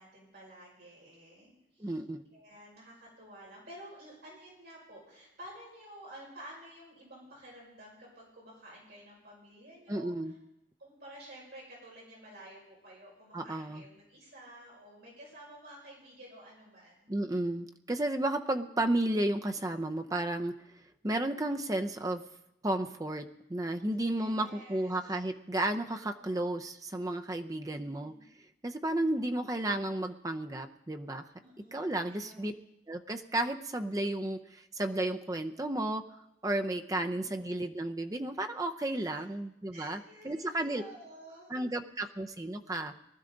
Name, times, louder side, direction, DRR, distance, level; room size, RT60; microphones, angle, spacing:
voice 1, 0.0-1.9 2.3-10.3 10.8-17.1 23.8-25.0 26.1-26.5 27.4-28.3 28.9-29.4 31.4-32.4 36.9-37.4 38.9-39.2 39.7-41.5, right 1 dB, 60° right, -4 dB, 5.5 m, -52 dB
voice 2, 1.8-2.2 9.9-10.3 13.3-13.8 17.1-20.5 21.0-22.2 22.6-28.1 28.6-31.2 31.7-32.5 32.9-36.0 36.4-40.8 41.5-42.9, right 1 dB, 20° right, 6 dB, 0.6 m, -33 dB
20.0 x 12.5 x 3.9 m, 0.86 s
head